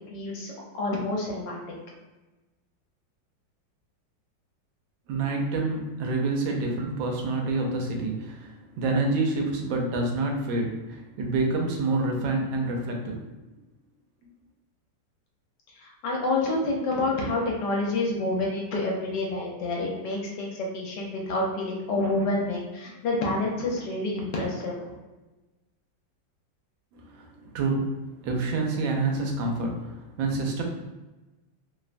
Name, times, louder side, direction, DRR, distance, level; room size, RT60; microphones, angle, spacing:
voice 1, 0.1-1.6 15.8-24.8, left 2 dB, 70° left, -2 dB, 1.2 m, -28 dB
voice 2, 5.1-13.6 26.9-28.0 28.2-30.6, right 3 dB, 90° right, 1 dB, 1.4 m, -28 dB
3.2 x 2.1 x 2.4 m, 1.1 s
omnidirectional pair, 2.0 m